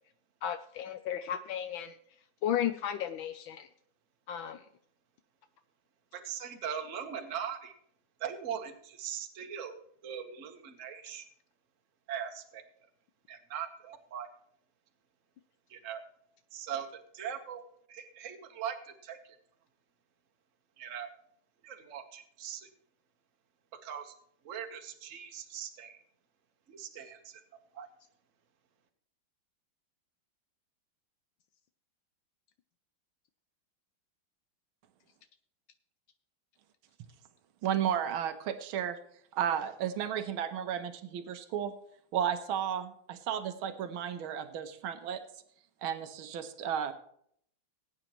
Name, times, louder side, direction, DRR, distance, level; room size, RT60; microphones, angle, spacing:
voice 1, 0.4-2.0 2.4-3.7 4.3-4.6, left 10 dB, 80° left, 9 dB, 1.4 m, -34 dB
voice 2, 6.1-7.7 8.2-9.8 10.0-11.2 12.1-12.6 13.3-14.3 15.7-16.0 16.5-16.9 17.1-17.6 17.9-19.2 20.8-21.1 21.6-22.7 23.7-24.1 24.4-26.0 26.7-27.4 27.7-27.9, right 8 dB, 45° right, 4 dB, 1.3 m, -40 dB
voice 3, 37.6-39.0 39.3-41.7 42.1-45.2 45.8-46.9, right 9 dB, 80° right, 8 dB, 1.7 m, -33 dB
19.5 x 8.9 x 3.0 m, 0.66 s
omnidirectional pair, 2.3 m